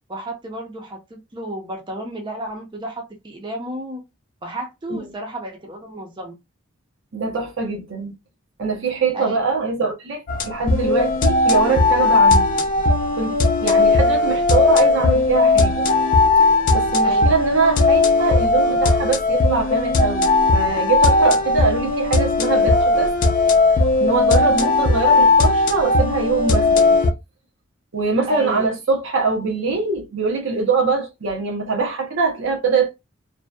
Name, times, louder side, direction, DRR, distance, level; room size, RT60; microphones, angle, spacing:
voice 1, 0.1-4.0 4.4-6.3 9.1-9.4 17.0-17.3 28.3-28.7, right 1 dB, 25° right, 0.6 m, -32 dB
voice 2, 7.1-8.1 8.6-12.5 13.2-15.9 16.7-23.1 24.0-26.9 27.9-32.9, right 4 dB, 65° right, 0.6 m, -23 dB
sound 1, 10.3-27.1, left 3 dB, 40° left, 0.4 m, -17 dB
2.6 x 2.1 x 2.2 m
head